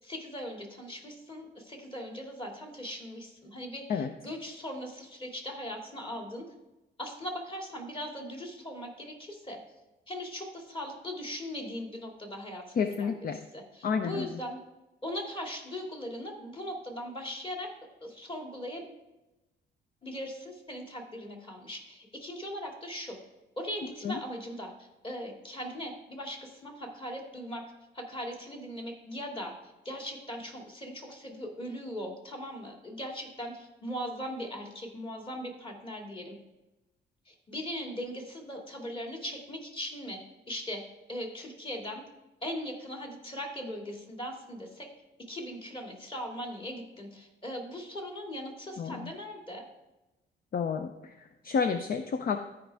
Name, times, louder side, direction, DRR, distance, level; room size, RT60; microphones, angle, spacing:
voice 1, 0.0-6.5 7.0-9.6 10.1-14.6 15.0-17.7 18.0-18.9 20.0-23.2 23.6-27.7 27.9-36.4 37.3-40.2 40.5-42.0 42.4-44.9 45.3-49.6, equal, 25° left, 2 dB, 2.3 m, -39 dB
voice 2, 12.8-13.4 13.8-14.4 24.0-24.2 48.8-49.1 50.5-52.4, left 6 dB, 45° left, 8 dB, 0.6 m, -30 dB
13.5 x 5.2 x 3.5 m, 1.0 s
cardioid pair, 90°, 20 cm